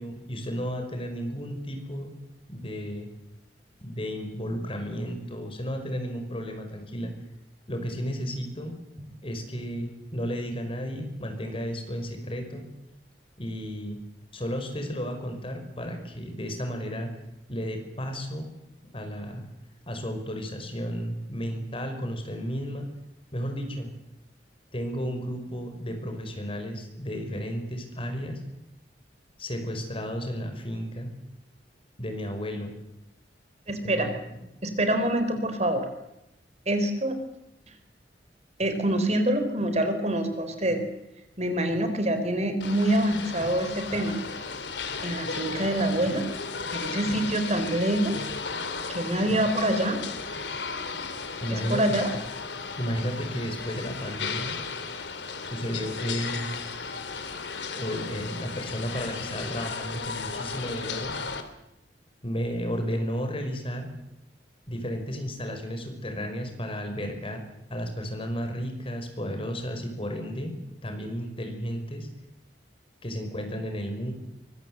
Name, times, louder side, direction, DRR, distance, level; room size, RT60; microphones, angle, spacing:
voice 1, 0.0-2.1 2.5-3.1 3.8-7.1 7.7-8.8 9.2-12.7 13.4-14.0 14.3-17.1 17.5-18.5 18.9-19.5 19.9-22.9 23.3-23.9 24.7-28.4 29.4-31.1 32.0-32.7 33.8-34.4 51.4-51.9 52.8-54.6 55.4-56.5 57.7-61.2 62.2-63.9 64.7-67.4 67.7-72.1 73.0-74.1, equal, 30° left, 5 dB, 5.5 m, -33 dB
voice 2, 33.7-34.1 34.6-35.8 36.7-37.2 38.6-40.8 41.4-44.2 45.0-46.2 46.7-48.3 48.9-50.0 51.5-52.1, right 1 dB, 40° right, 8 dB, 4.0 m, -26 dB
sound 1, 42.6-61.4, left 5 dB, 85° left, 3.1 m, -35 dB
24.5 x 23.5 x 8.0 m, 0.87 s
head